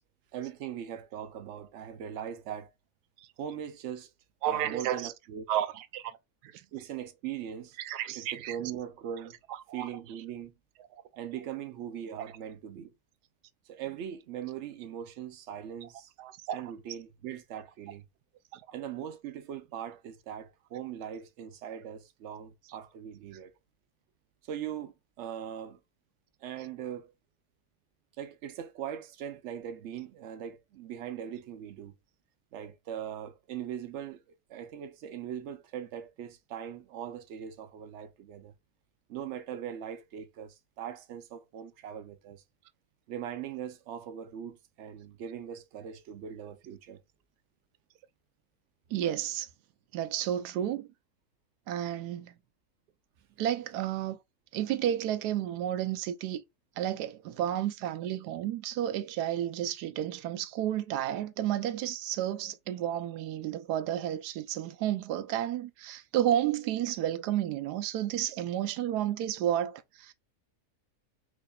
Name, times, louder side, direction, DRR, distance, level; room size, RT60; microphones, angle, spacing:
voice 1, 0.3-2.7 3.4-4.1 4.5-5.5 6.7-7.8 8.1-9.4 9.7-10.5 11.2-12.9 13.7-16.1 16.5-18.1 18.7-23.6 24.4-25.8 26.4-27.1 28.2-31.9 32.5-34.2 34.5-38.5 39.1-42.4 43.1-47.0, right 9 dB, 65° right, 0.7 m, -40 dB
voice 2, 4.4-5.1 5.5-6.2 6.4-6.6 7.8-8.6 9.7-9.9 16.2-16.6 18.5-18.6 48.9-49.5 49.9-50.9 51.7-52.3 53.4-54.2 54.5-56.4 56.8-70.1, right 11 dB, 85° right, 1.1 m, -31 dB
4.8 x 2.6 x 2.3 m
omnidirectional pair, 1.7 m